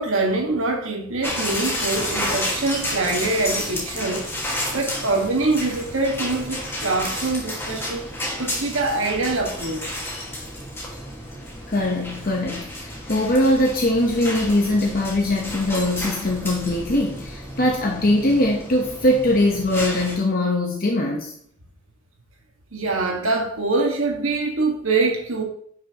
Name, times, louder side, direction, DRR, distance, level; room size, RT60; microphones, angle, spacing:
voice 1, 0.0-4.3 4.7-8.0 8.4-9.8 22.7-25.4, right 3 dB, 85° right, 1.8 m, -24 dB
sound 1, 1.2-20.1, left 1 dB, 10° left, 1.9 m, -31 dB
voice 2, 11.7-21.3, left 1 dB, 45° left, 1.1 m, -21 dB
10.0 x 6.0 x 3.0 m
head